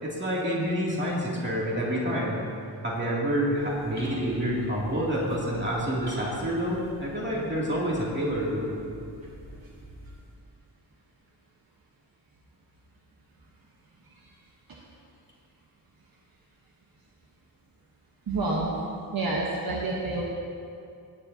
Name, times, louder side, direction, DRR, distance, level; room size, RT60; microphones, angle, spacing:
voice 1, 0.0-2.4 2.8-8.7, equal, 30° right, -6 dB, 2.8 m, -28 dB
sound 1, 3.4-10.3, equal, 20° left, 2.9 m, -47 dB
voice 2, 18.3-18.7 19.1-20.2, right 2 dB, 60° right, -3 dB, 1.3 m, -28 dB
17.5 x 10.0 x 2.9 m, 2.5 s
wide cardioid pair, 145°, 40 cm